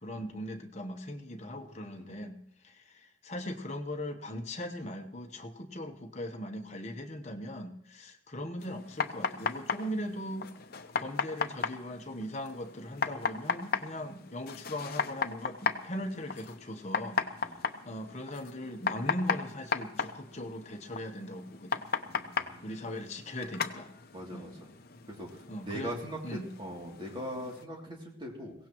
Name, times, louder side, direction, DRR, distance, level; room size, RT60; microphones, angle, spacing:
voice 1, 0.0-2.4 2.6-10.5 11.0-17.2 17.8-21.8 22.6-23.9 24.3-24.5 25.5-25.9 26.2-26.5, left 1 dB, 35° left, 4 dB, 1.1 m, -39 dB
sound 1, 8.6-27.6, left 5 dB, 50° left, 0.7 m, -36 dB
voice 2, 22.1-22.7 24.1-24.5 25.1-28.5, equal, 25° right, -1 dB, 2.8 m, -41 dB
22.5 x 17.0 x 3.1 m, 0.71 s
head